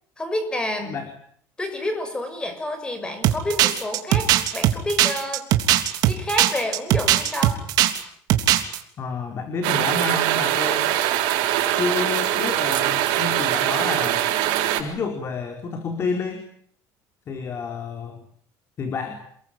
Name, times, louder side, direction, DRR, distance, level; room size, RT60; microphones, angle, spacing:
voice 1, 0.2-0.9 1.6-5.4 6.0-7.6, left 1 dB, 10° left, 8 dB, 6.4 m, -29 dB
sound 1, 3.2-8.0 8.3-8.8, right 14 dB, 60° right, 3.2 m, -19 dB
voice 2, 9.0-10.9 11.7-14.3 14.8-16.5 17.3-18.2 18.8-19.2, left 4 dB, 35° left, 5 dB, 4.2 m, -29 dB
sound 2, 9.6-14.8, right 13 dB, 85° right, 7.0 m, -22 dB
28.5 x 21.5 x 9.1 m, 0.63 s
cardioid pair, 155°, 8 cm